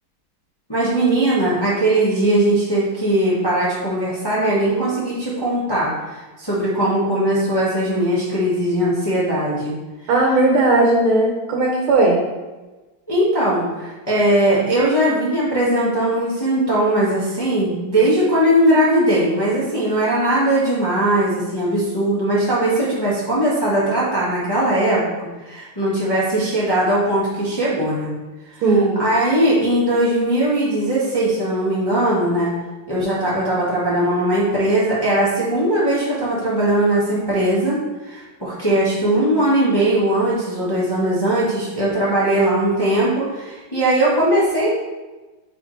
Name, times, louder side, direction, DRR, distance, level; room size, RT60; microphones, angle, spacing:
voice 1, 0.7-9.7 13.1-28.1 28.5-32.5 32.9-44.7, right 1 dB, 15° left, -7 dB, 1.0 m, -19 dB
voice 2, 10.1-12.2 28.6-29.0, right 2 dB, 85° right, 0 dB, 1.7 m, -16 dB
9.2 x 3.5 x 3.2 m, 1.2 s
omnidirectional pair, 2.3 m